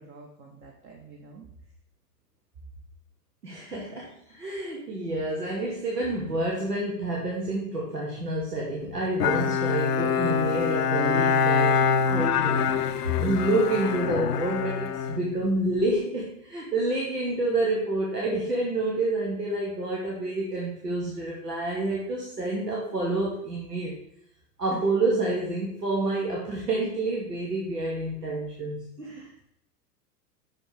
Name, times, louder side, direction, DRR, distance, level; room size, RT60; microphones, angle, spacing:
voice 1, 0.0-1.4 24.7-24.8 29.0-29.4, right 5 dB, 25° right, 0 dB, 1.0 m, -47 dB
voice 2, 3.4-11.7 12.0-12.6 12.9-24.0 24.6-29.1, right 2 dB, 80° right, -3 dB, 1.6 m, -28 dB
Bowed string instrument, 9.2-15.9, left 6 dB, 75° left, 0.5 m, -25 dB
5.8 x 5.1 x 4.9 m, 0.78 s
figure-of-eight pair, 95°, 47 cm